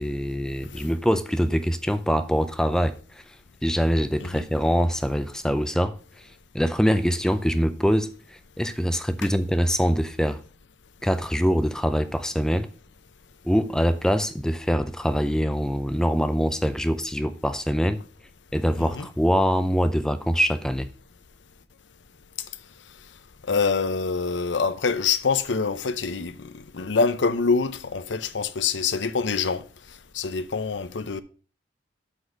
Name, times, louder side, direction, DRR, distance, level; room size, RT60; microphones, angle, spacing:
voice 1, 0.0-2.9 3.6-5.9 6.5-8.1 8.6-10.4 11.0-12.7 13.4-18.0 18.5-20.9, equal, 5° left, 0.4 m, -23 dB
voice 2, 23.5-29.6 30.1-31.2, left 5 dB, 90° left, 0.7 m, -25 dB
8.0 x 4.2 x 6.2 m
head